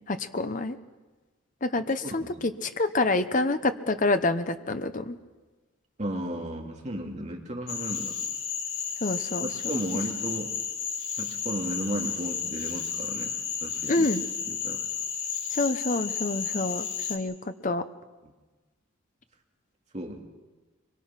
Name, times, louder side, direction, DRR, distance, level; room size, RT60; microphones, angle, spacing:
voice 1, 0.1-0.8 1.6-5.2 9.0-9.5 13.9-14.2 15.5-17.8, left 2 dB, 40° left, 10 dB, 1.0 m, -27 dB
voice 2, 6.0-8.1 9.4-10.5 11.2-13.3 13.6-14.1 14.5-14.8 19.9-20.2, right 1 dB, 35° right, 1 dB, 2.5 m, -34 dB
Cricket / Frog, 7.7-17.2, left 6 dB, 80° left, 2.5 m, -32 dB
23.5 x 23.0 x 6.0 m, 1.3 s
head